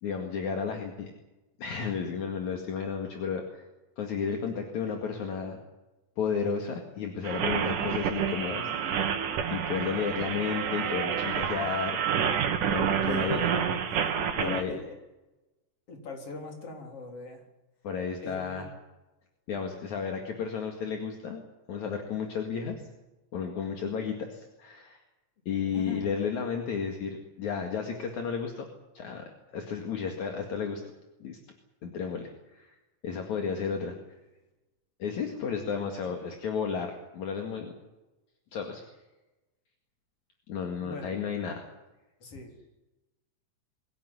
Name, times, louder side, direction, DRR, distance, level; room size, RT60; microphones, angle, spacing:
voice 1, 0.0-1.1 1.6-3.7 4.0-5.6 6.2-9.1 9.5-12.0 12.7-13.4 14.3-14.8 17.8-18.7 19.5-21.4 21.7-22.8 23.3-25.0 25.5-28.7 28.9-29.2 29.5-30.8 31.2-31.4 31.8-32.7 33.0-34.0 35.0-37.7 38.5-38.8 40.5-41.6, left 6 dB, 65° left, 3 dB, 3.4 m, -33 dB
sound 1, 7.2-14.6, right 8 dB, 75° right, 3.3 m, -29 dB
voice 2, 13.0-14.1 14.4-15.0 15.9-17.4 18.2-18.7 25.7-26.0 40.8-41.2 42.2-42.6, left 3 dB, 45° left, 3 dB, 4.6 m, -41 dB
23.0 x 16.5 x 9.8 m, 1.0 s
omnidirectional pair, 3.7 m